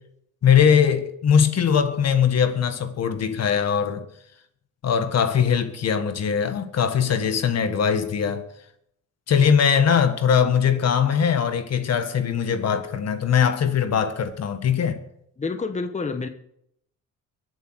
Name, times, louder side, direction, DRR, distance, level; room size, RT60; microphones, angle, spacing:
voice 1, 0.4-4.0 4.8-8.5 9.3-15.0, left 7 dB, 55° left, 1.6 m, -21 dB
voice 2, 15.4-16.3, left 4 dB, 25° left, 1.3 m, -28 dB
22.5 x 7.6 x 6.4 m
cardioid pair, 90°, 30 cm